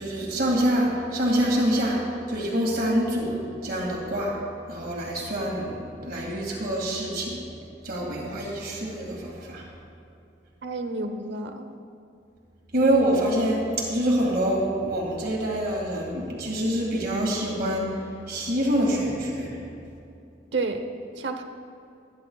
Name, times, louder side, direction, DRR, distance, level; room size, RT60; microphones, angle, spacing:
voice 1, 0.0-4.4 4.7-7.4 7.8-9.7 12.7-19.6, right 1 dB, 55° right, -2 dB, 2.2 m, -26 dB
voice 2, 10.6-11.7 20.5-20.8 21.2-21.4, right 3 dB, 75° right, 6 dB, 0.9 m, -30 dB
23.0 x 10.5 x 2.4 m, 2.6 s
head